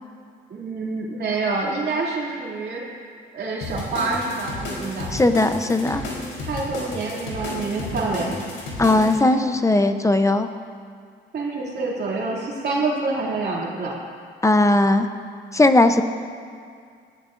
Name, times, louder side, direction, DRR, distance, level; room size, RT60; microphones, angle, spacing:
voice 1, 0.5-2.8 3.3-5.1 6.4-8.3 11.3-13.9, right 3 dB, 55° right, -4 dB, 2.6 m, -27 dB
sound 1, 3.6-9.2, left 2 dB, 75° left, 3.7 m, -32 dB
voice 2, 5.1-6.0 8.8-10.5 14.4-15.1 15.5-16.0, left 2 dB, 15° left, 8 dB, 0.7 m, -18 dB
18.5 x 14.0 x 2.6 m, 2.2 s
cardioid pair, 90°, 20 cm